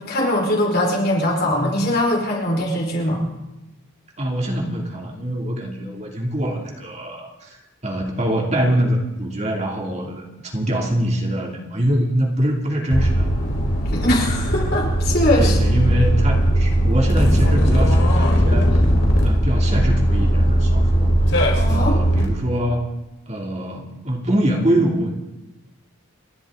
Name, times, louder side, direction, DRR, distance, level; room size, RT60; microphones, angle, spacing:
voice 1, 0.0-3.3 13.9-15.6 21.5-22.0, left 1 dB, 50° left, -1 dB, 5.0 m, -21 dB
voice 2, 4.2-7.6 7.8-13.3 15.4-18.8 19.2-21.1 21.7-22.9 23.3-25.2, right 1 dB, 35° right, 0 dB, 2.7 m, -23 dB
sound 1, 12.9-22.2, equal, 65° left, 4.5 m, -18 dB
29.0 x 13.0 x 3.8 m, 1.0 s
head